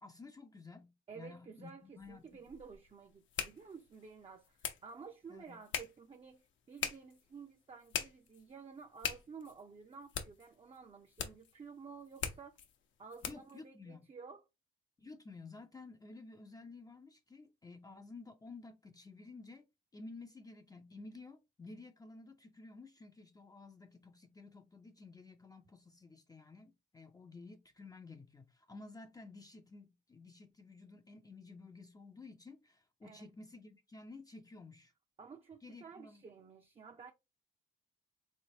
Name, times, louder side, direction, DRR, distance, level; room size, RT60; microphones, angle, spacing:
voice 1, 0.0-2.2 5.3-5.6 13.2-14.1 15.0-19.7 19.9-34.9 35.6-36.2, left 3 dB, 20° left, 0.5 m, -53 dB
voice 2, 1.1-12.6 13.0-14.4 33.0-33.2 35.2-37.1, right 5 dB, 30° right, 0.5 m, -52 dB
sound 1, 2.0-13.6, left 8 dB, 70° left, 0.8 m, -44 dB
3.7 x 3.2 x 2.8 m
cardioid pair, 90°, 20 cm